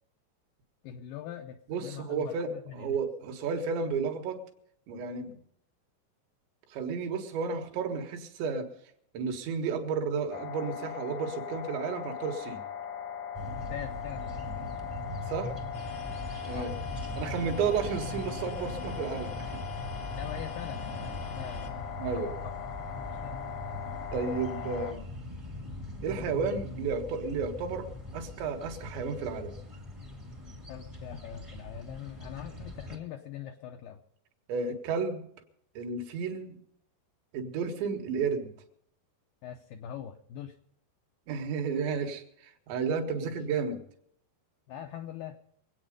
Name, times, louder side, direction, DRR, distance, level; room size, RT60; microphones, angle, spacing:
voice 1, 0.8-3.0 13.6-14.7 16.5-16.7 20.1-23.4 30.7-34.0 39.4-40.6 43.2-43.4 44.7-45.4, left 9 dB, 85° left, 5 dB, 2.0 m, -43 dB
voice 2, 1.7-4.4 4.9-5.4 6.7-8.7 9.1-12.7 15.3-15.5 16.5-16.7 17.2-19.6 22.0-22.3 24.1-25.0 26.0-27.9 28.1-29.6 34.5-35.2 35.8-36.6 37.3-38.5 41.3-43.8, right 5 dB, 80° right, 4 dB, 3.8 m, -32 dB
sound 1, 10.3-24.9, left 8 dB, 70° left, 1.8 m, -40 dB
sound 2, 13.3-33.0, left 1 dB, 25° right, 0.6 m, -41 dB
sound 3, 15.7-21.7, left 2 dB, 50° left, 1.0 m, -48 dB
24.0 x 8.8 x 5.2 m, 0.68 s
omnidirectional pair, 5.0 m